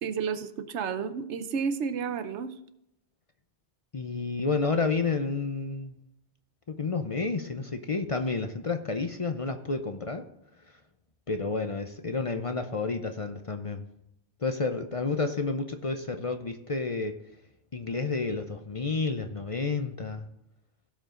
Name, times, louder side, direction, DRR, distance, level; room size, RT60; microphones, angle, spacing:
voice 1, 0.0-2.5, right 6 dB, 85° right, 11 dB, 1.1 m, -31 dB
voice 2, 3.9-5.9 6.7-10.2 11.3-13.8 14.4-17.2 17.7-20.2, left 4 dB, 40° left, 7 dB, 0.6 m, -30 dB
16.0 x 5.5 x 3.7 m, 0.82 s
omnidirectional pair, 1.1 m